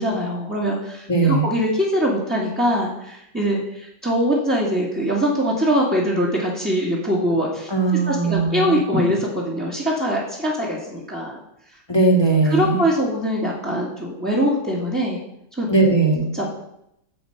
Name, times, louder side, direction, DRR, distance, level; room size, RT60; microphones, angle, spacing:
voice 1, 0.0-7.7 8.1-11.4 12.4-15.2 15.6-15.7 16.3-16.5, equal, 5° right, -6 dB, 1.9 m, -22 dB
voice 2, 1.1-1.5 7.7-8.8 11.9-12.8 15.7-16.2, right 3 dB, 15° left, 1 dB, 1.9 m, -18 dB
10.5 x 5.1 x 7.9 m, 0.79 s
omnidirectional pair, 1.8 m